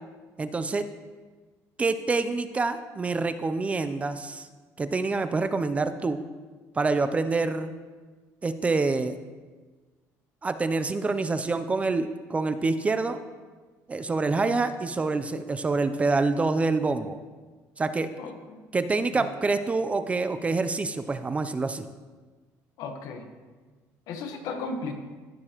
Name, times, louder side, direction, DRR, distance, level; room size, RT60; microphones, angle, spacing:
voice 1, 0.4-0.8 1.8-4.5 4.8-6.2 6.8-7.7 8.4-9.2 10.4-13.2 13.9-17.2 17.8-18.1 18.7-21.8, right 3 dB, 20° right, 11 dB, 0.5 m, -26 dB
voice 2, 18.2-18.6 19.1-19.3 22.8-23.2 24.1-24.9, left 4 dB, 70° left, 5 dB, 1.2 m, -35 dB
16.0 x 6.7 x 3.0 m, 1.4 s
cardioid pair, 125°, 6 cm